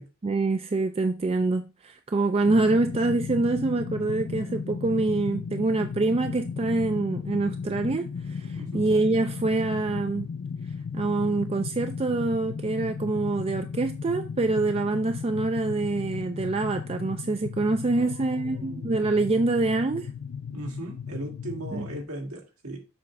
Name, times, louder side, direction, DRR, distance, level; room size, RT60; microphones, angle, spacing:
voice 1, 0.2-10.3 10.9-20.1 21.7-21.9, right 3 dB, 25° right, 0.4 m, -25 dB
sound 1, 2.4-22.0, left 6 dB, 65° left, 0.4 m, -35 dB
voice 2, 8.5-8.9 18.0-19.1 20.5-22.8, right 1 dB, 85° right, 2.2 m, -38 dB
7.1 x 3.2 x 5.8 m
head